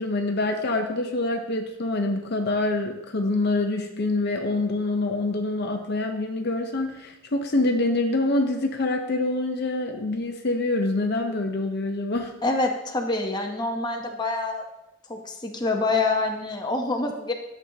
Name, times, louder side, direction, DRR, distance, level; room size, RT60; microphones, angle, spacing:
voice 1, 0.0-12.3, left 2 dB, 55° left, 4 dB, 0.8 m, -26 dB
voice 2, 12.4-14.6 15.1-17.3, left 3 dB, 20° left, 2 dB, 0.9 m, -26 dB
11.0 x 7.4 x 2.8 m, 0.92 s
head